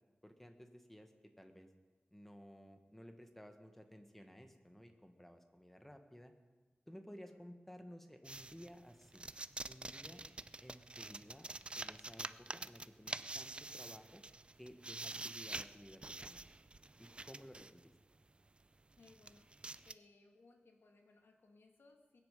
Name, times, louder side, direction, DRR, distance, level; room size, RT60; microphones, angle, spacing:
voice 1, 0.2-1.1 1.4-1.7 2.1-6.3 6.9-9.3 9.7-10.2 10.6-11.5 11.8-14.2 14.6-16.4 17.0-17.9, equal, 5° left, 6 dB, 1.4 m, -56 dB
voice 2, 7.1-7.4 19.0-19.5 19.9-22.2, left 3 dB, 85° left, 3 dB, 1.9 m, -65 dB
sound 1, 8.2-17.8 18.5-18.6 18.9-19.9, right 2 dB, 30° right, 0.4 m, -47 dB
21.5 x 9.7 x 5.2 m, 1.3 s
wide cardioid pair, 110°, 4 cm